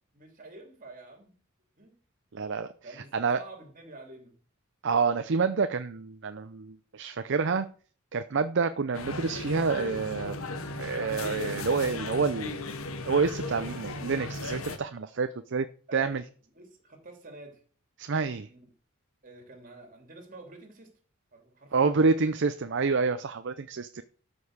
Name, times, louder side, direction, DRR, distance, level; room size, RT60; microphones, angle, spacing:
voice 1, 0.1-1.4 1.8-2.0 2.8-4.4 15.9-17.6 18.5-18.7 19.2-20.9 21.3-22.1, right 2 dB, 40° right, 2.9 m, -48 dB
voice 2, 2.3-2.7 3.1-3.4 4.8-7.7 8.1-10.3 10.8-12.6 13.1-15.7 15.9-16.2 18.0-18.5 21.7-24.0, right 4 dB, 55° right, 0.6 m, -28 dB
sound 1, 8.9-14.8, left 2 dB, 80° left, 1.3 m, -36 dB
12.5 x 5.4 x 6.5 m
head